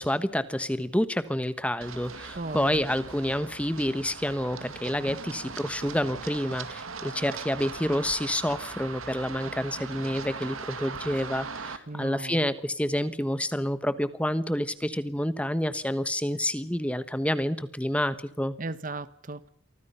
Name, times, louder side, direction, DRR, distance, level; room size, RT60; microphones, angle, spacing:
voice 1, 0.0-18.5, left 1 dB, 5° left, 1.1 m, -28 dB
Run, 1.8-11.8, right 4 dB, 85° right, 2.3 m, -40 dB
voice 2, 2.4-2.9 11.9-12.5 18.6-19.5, right 2 dB, 40° right, 1.0 m, -36 dB
28.5 x 24.5 x 5.6 m
head